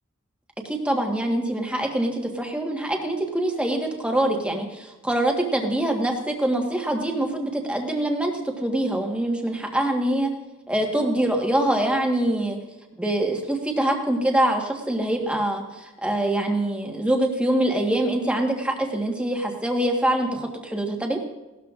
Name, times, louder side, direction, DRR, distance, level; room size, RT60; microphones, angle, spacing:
voice 1, 0.6-8.3 8.6-10.3 10.7-12.6 13.0-21.2, right 1 dB, 5° right, 2 dB, 1.3 m, -24 dB
18.0 x 12.5 x 2.5 m, 1.1 s
head